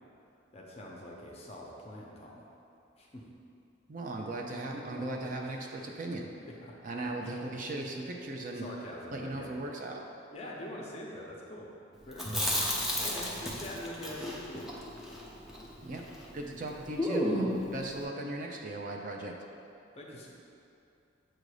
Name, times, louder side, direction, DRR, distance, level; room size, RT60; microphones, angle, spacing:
voice 1, 0.5-2.5 3.0-3.2 4.7-5.1 5.4-5.9 6.4-6.7 7.0-7.4 8.6-9.5 10.3-11.7 12.0-14.7 19.9-20.3, left 1 dB, 35° left, -2 dB, 0.7 m, -44 dB
voice 2, 3.9-6.3 6.8-8.6 9.1-10.0 15.8-16.0 16.3-19.3, right 2 dB, 45° right, 1 dB, 0.5 m, -37 dB
Chewing mastication, 12.1-16.3 16.5-16.6 17.0-17.7, equal, ahead, 0.6 m, -33 dB
7.6 x 2.6 x 4.8 m, 2.6 s
head